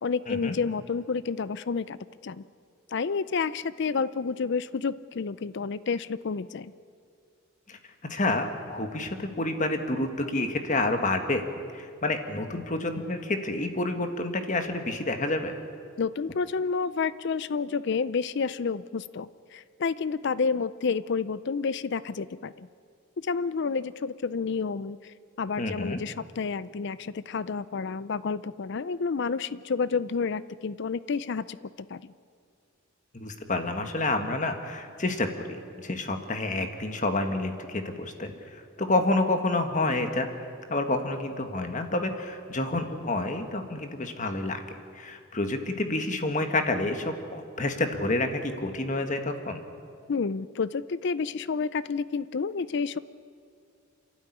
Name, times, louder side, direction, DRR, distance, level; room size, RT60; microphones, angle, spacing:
voice 1, 0.0-2.0 2.2-2.4 2.9-6.7 16.0-22.7 23.2-31.6 31.9-32.1 50.1-53.0, left 5 dB, 55° left, 17 dB, 0.5 m, -30 dB
voice 2, 7.7-11.4 11.7-15.5 25.6-26.0 33.1-40.3 40.7-44.6 44.9-49.6, left 2 dB, 35° left, 6 dB, 1.6 m, -29 dB
28.0 x 12.0 x 9.9 m, 2.3 s
head